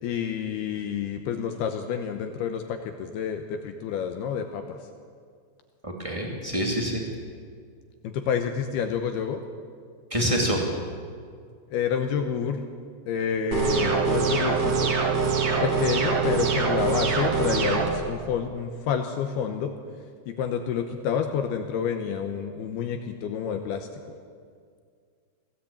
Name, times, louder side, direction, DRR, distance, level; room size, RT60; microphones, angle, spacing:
voice 1, 0.0-4.8 8.0-9.4 11.7-12.6 13.1-14.9 15.6-19.7 20.3-23.9, left 7 dB, 80° left, 6 dB, 2.3 m, -29 dB
voice 2, 5.8-7.0 10.1-10.7, equal, 25° right, -1 dB, 0.7 m, -26 dB
sound 1, 13.5-17.9, right 5 dB, 45° right, 3.3 m, -24 dB
22.0 x 16.5 x 8.7 m, 2.1 s
omnidirectional pair, 5.8 m